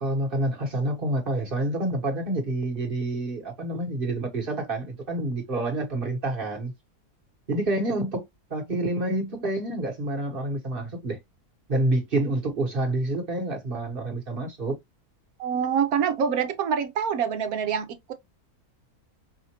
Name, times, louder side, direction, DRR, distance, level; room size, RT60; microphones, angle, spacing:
voice 1, 0.0-6.7 7.5-8.2 8.5-11.2 11.7-14.8, right 1 dB, 35° right, 1.2 m, -28 dB
voice 2, 15.4-18.1, right 7 dB, 65° right, 1.1 m, -26 dB
5.0 x 2.5 x 2.8 m
omnidirectional pair, 1.7 m